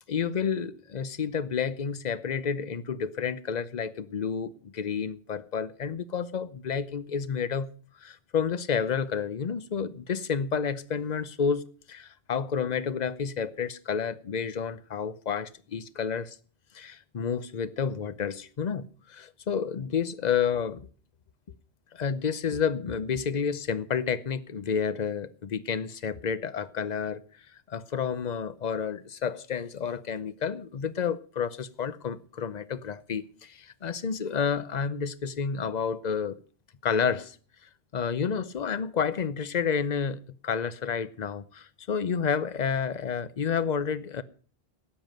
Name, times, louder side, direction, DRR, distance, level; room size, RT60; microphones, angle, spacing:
voice 1, 0.1-7.7 8.0-16.4 16.7-20.8 21.9-27.2 27.7-36.4 36.8-37.4 37.9-44.2, left 6 dB, 45° left, 0.8 m, -30 dB
13.0 x 9.2 x 6.6 m
omnidirectional pair, 1.0 m